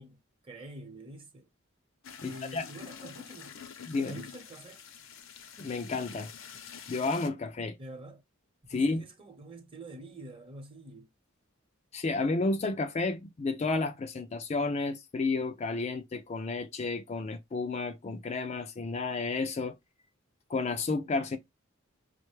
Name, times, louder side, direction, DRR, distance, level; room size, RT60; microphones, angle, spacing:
voice 1, 0.0-1.5 2.2-3.6 4.1-4.8 7.8-8.2 8.7-11.1, right 1 dB, 25° right, 0.9 m, -46 dB
sound 1, 2.0-7.3, left 7 dB, 70° left, 0.7 m, -47 dB
voice 2, 2.2-2.6 3.9-4.2 5.6-6.3 6.9-7.8 8.7-9.0 11.9-19.8 20.5-21.4, left 3 dB, 30° left, 0.3 m, -31 dB
5.0 x 2.1 x 3.1 m
head